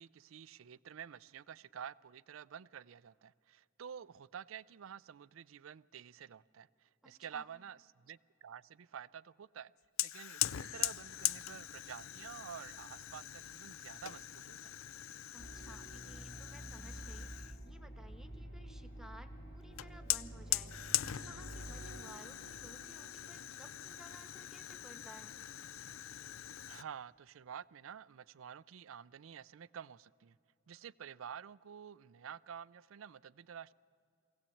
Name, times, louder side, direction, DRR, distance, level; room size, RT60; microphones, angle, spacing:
voice 1, 0.0-9.7 10.0-14.7 26.7-30.4 30.7-33.7, right 8 dB, 80° right, 20 dB, 0.4 m, -50 dB
voice 2, 7.0-7.5 15.3-25.3, equal, 5° right, 9 dB, 1.1 m, -57 dB
Fire, 10.0-17.6 19.8-26.8, left 14 dB, 85° left, 0.4 m, -41 dB
sound 1, 14.6-25.4, right 4 dB, 60° right, 0.8 m, -61 dB
sound 2, 15.4-22.0, right 1 dB, 60° left, 2.4 m, -49 dB
23.0 x 17.0 x 8.5 m, 2.5 s
head